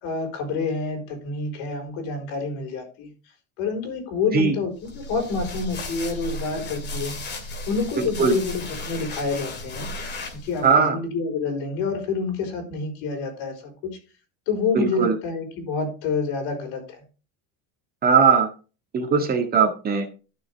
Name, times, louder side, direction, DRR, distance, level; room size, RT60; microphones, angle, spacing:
voice 1, 0.0-3.1 3.6-7.2 7.7-9.9 10.3-13.6 13.8-14.0 14.5-17.0, left 4 dB, 75° left, 4 dB, 4.3 m, -28 dB
sound 1, 4.8-10.7, left 2 dB, 30° left, 2.2 m, -35 dB
voice 2, 8.0-8.4 10.6-11.0 14.7-15.2 18.0-18.5 18.9-20.1, right 6 dB, 25° right, 4 dB, 1.8 m, -19 dB
12.0 x 6.5 x 3.5 m, 0.33 s
cardioid pair, 145°, 34 cm